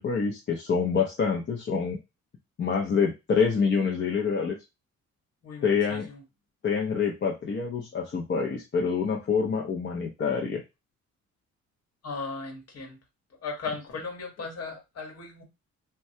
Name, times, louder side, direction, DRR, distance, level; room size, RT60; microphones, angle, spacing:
voice 1, 0.0-2.0 2.6-4.6 5.6-6.1 6.6-10.6, left 5 dB, 40° left, 0 dB, 0.6 m, -26 dB
voice 2, 5.4-6.2 12.0-13.0 13.4-15.4, left 4 dB, 55° left, 2 dB, 1.2 m, -37 dB
3.1 x 2.2 x 2.7 m, 0.23 s
cardioid pair, 90°, 30 cm